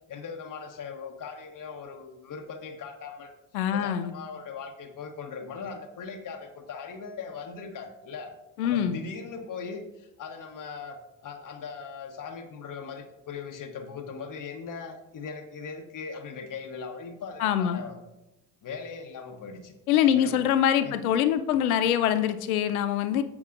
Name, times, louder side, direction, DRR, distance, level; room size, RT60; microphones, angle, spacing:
voice 1, 0.1-3.3 3.7-8.3 8.6-18.0 18.6-19.7 20.1-20.3 20.8-21.0, left 5 dB, 50° left, 4 dB, 1.1 m, -39 dB
voice 2, 3.5-4.1 8.6-9.0 17.4-17.8 19.9-23.2, left 10 dB, 85° left, 11 dB, 0.6 m, -24 dB
9.7 x 7.2 x 2.5 m, 0.96 s
hypercardioid pair, 50°, 42 cm